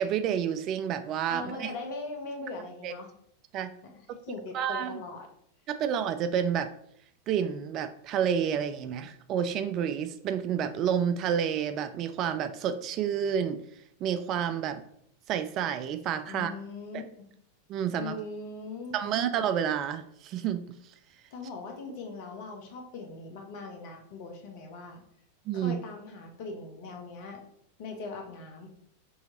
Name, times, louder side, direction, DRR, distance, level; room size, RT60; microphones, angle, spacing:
voice 1, 0.0-1.7 2.8-2.9 3.5-3.7 4.5-5.0 5.7-6.7 7.3-13.6 14.0-14.8 15.3-16.5 16.9-17.0 17.7-18.2 18.9-20.8 25.5-25.8, right 8 dB, 35° right, 10 dB, 0.3 m, -29 dB
voice 2, 1.3-3.1 3.8-3.9 4.3-5.3 16.3-17.0 18.0-19.2 21.3-25.0 25.5-27.4 27.8-28.7, left 3 dB, 50° left, 3 dB, 0.9 m, -40 dB
5.5 x 2.8 x 2.8 m, 0.70 s
figure-of-eight pair, 90°, 0 cm